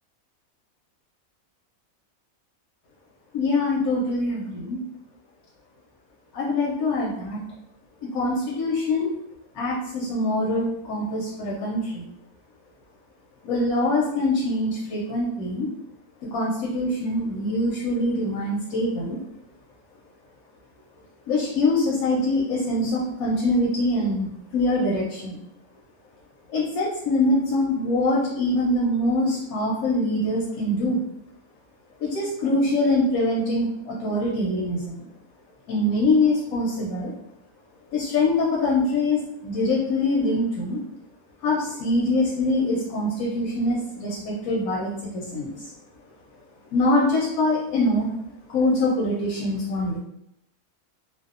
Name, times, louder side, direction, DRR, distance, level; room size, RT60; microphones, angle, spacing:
voice 1, 3.3-4.8 6.3-7.4 8.1-9.1 9.5-12.0 13.4-15.7 16.3-19.2 21.3-25.4 26.5-31.0 32.0-35.0 35.7-37.1 37.9-40.8 41.4-45.5 46.7-48.1 48.5-50.0, left 2 dB, 90° left, -4 dB, 1.0 m, -24 dB
2.6 x 2.0 x 2.4 m, 0.79 s
omnidirectional pair, 1.5 m